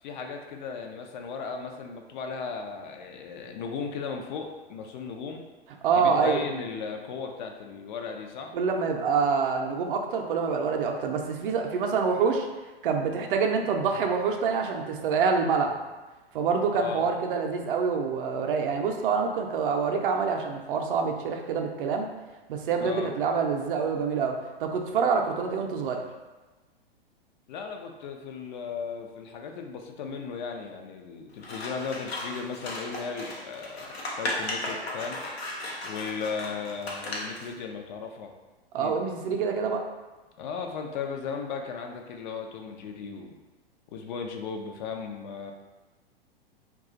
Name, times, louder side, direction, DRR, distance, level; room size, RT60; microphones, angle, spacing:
voice 1, 0.0-5.4 6.0-8.5 16.7-17.1 22.8-23.1 27.5-35.2 35.8-38.3 38.8-39.0 40.4-43.4 43.9-45.5, left 5 dB, 50° left, 3 dB, 0.5 m, -36 dB
voice 2, 5.8-6.4 8.5-12.5 12.8-15.8 16.3-22.1 22.5-26.0 38.7-39.8, right 5 dB, 60° right, 3 dB, 0.5 m, -26 dB
Scissors, 31.4-37.5, left 1 dB, 85° left, 0.7 m, -36 dB
2.4 x 2.3 x 3.8 m, 1.2 s
hypercardioid pair, 105°, 30 cm